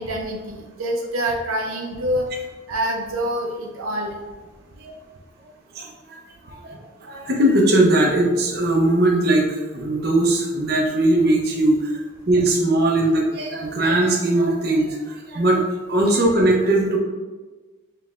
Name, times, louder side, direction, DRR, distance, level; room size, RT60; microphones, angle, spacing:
voice 1, 0.0-2.3 2.7-4.1, right 1 dB, 90° right, 0 dB, 0.6 m, -26 dB
voice 2, 5.7-6.2 6.5-6.8 7.0-15.6 15.9-17.0, right 1 dB, 50° right, 0 dB, 0.7 m, -20 dB
5.2 x 3.2 x 2.5 m, 1.3 s
head